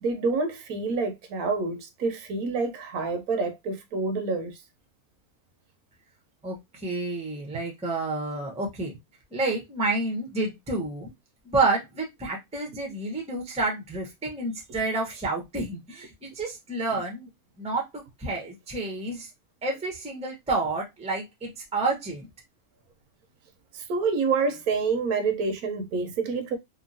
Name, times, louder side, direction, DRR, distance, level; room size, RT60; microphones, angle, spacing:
voice 1, 0.0-4.6 23.7-26.6, right 4 dB, 75° right, 1.1 m, -27 dB
voice 2, 6.4-8.9 9.3-11.1 11.5-17.3 17.6-19.3 19.6-22.3, right 3 dB, 5° right, 0.6 m, -29 dB
2.9 x 2.6 x 2.5 m
omnidirectional pair, 1.6 m